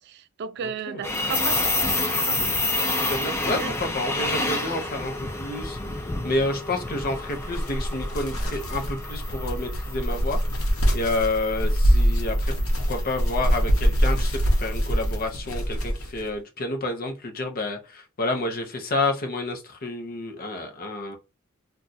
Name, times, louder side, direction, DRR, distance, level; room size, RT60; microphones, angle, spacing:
voice 1, 0.1-1.8 2.2-2.5 3.6-3.7 5.8-5.9, right 7 dB, 50° right, 0.3 m, -34 dB
voice 2, 0.6-1.0 2.3-2.5 3.1-12.6 12.9-21.2, left 2 dB, 45° left, 0.7 m, -29 dB
sound 1, 1.0-15.1, left 2 dB, 10° left, 0.4 m, -30 dB
sound 2, 7.1-16.3, equal, 80° left, 0.9 m, -24 dB
2.5 x 2.3 x 4.0 m
head